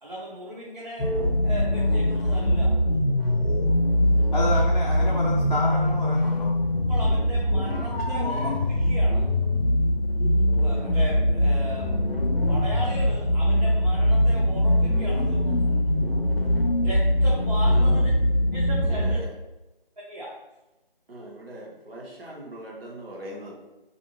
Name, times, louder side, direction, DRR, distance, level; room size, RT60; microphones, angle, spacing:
voice 1, 0.0-1.1 1.4-2.8 4.3-4.4 6.9-9.2 10.6-15.5 16.8-18.1 18.5-19.2 20.1-20.3, right 1 dB, 45° right, -5 dB, 0.6 m, -37 dB
sound 1, 1.0-19.2, left 1 dB, 90° left, 0.6 m, -22 dB
voice 2, 4.3-6.5, left 1 dB, 45° left, -5 dB, 0.4 m, -29 dB
voice 3, 17.7-18.0 18.8-19.3 21.1-23.5, right 1 dB, 80° right, -2 dB, 0.9 m, -40 dB
2.5 x 2.1 x 3.0 m, 1.0 s
figure-of-eight pair, 165°, 29 cm